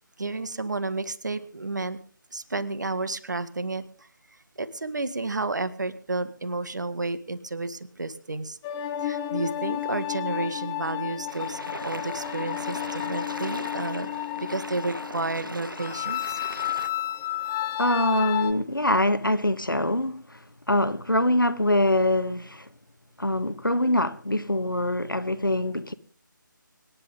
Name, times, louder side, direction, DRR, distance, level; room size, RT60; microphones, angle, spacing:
voice 1, 0.2-2.0 2.3-4.1 4.6-8.6 9.0-14.1 14.4-16.4, right 3 dB, 60° right, 1.9 m, -31 dB
sound 1, 8.6-18.5, left 13 dB, 10° left, 0.6 m, -32 dB
sound 2, 11.3-16.9, right 1 dB, 85° right, 1.4 m, -40 dB
voice 2, 17.8-20.2 20.7-22.7 23.2-25.9, left 1 dB, 90° left, 1.6 m, -24 dB
25.5 x 11.0 x 3.7 m
figure-of-eight pair, 155°, 11 cm